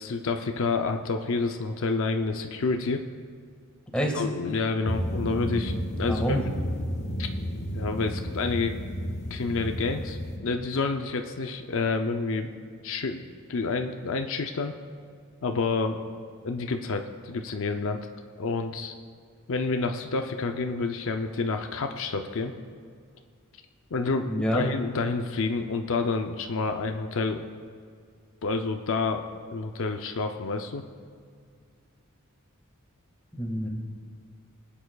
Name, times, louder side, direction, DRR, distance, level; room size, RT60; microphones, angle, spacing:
voice 1, 0.0-3.0 4.0-6.4 7.2-7.3 7.7-8.8 9.3-12.5 12.8-13.2 13.5-14.7 15.4-16.0 16.4-18.0 18.4-18.9 19.5-22.5 23.9-27.5 28.4-29.2 29.5-30.8, left 4 dB, 65° left, 5 dB, 0.5 m, -29 dB
voice 2, 3.9-4.2 6.1-6.4 24.3-24.7 33.3-33.7, equal, 5° left, -1 dB, 1.7 m, -27 dB
sound 1, 4.8-10.4, equal, 30° left, 1.1 m, -32 dB
22.0 x 8.8 x 2.3 m, 2.2 s
head